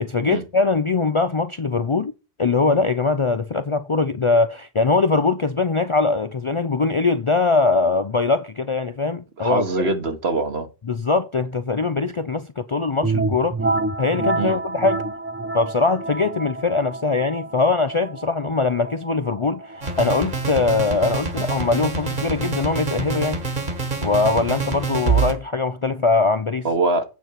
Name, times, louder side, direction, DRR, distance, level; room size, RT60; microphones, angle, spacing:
voice 1, 0.0-2.1 2.4-9.6 10.9-13.6 14.0-15.0 15.5-23.4 24.0-26.7, left 3 dB, 40° left, 0.4 m, -21 dB
voice 2, 9.4-10.7 14.4-14.6 26.6-27.0, right 3 dB, 70° right, 1.8 m, -23 dB
sound 1, 13.0-22.6, right 3 dB, 15° right, 0.5 m, -29 dB
sound 2, 19.8-25.3, right 4 dB, 45° right, 1.8 m, -26 dB
9.2 x 4.5 x 6.4 m
omnidirectional pair, 1.1 m